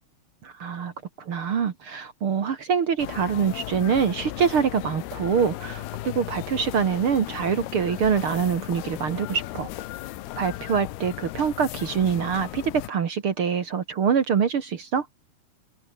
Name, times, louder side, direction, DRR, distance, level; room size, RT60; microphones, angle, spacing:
voice 1, 0.4-9.7 10.4-15.1, right 7 dB, 50° right, 1.7 m, -25 dB
sound 1, 3.0-12.9, left 15 dB, 90° left, 3.1 m, -36 dB
open air
omnidirectional pair, 4.5 m